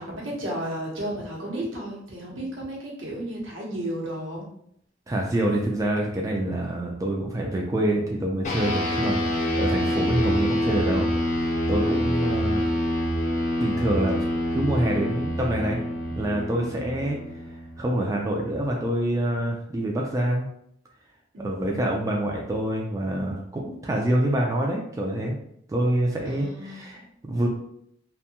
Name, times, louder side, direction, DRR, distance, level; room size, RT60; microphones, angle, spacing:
voice 1, 0.0-4.4 16.6-16.8 21.3-22.0 26.3-26.9, right 1 dB, 80° right, -2 dB, 0.9 m, -33 dB
voice 2, 5.1-12.7 13.6-14.2 14.5-15.8 16.1-17.2 17.8-20.5 21.4-25.4 25.7-27.5, right 1 dB, 15° right, -1 dB, 0.3 m, -26 dB
sound 1, 8.4-18.2, equal, 40° left, 0.6 m, -26 dB
2.6 x 2.2 x 2.8 m, 0.70 s
head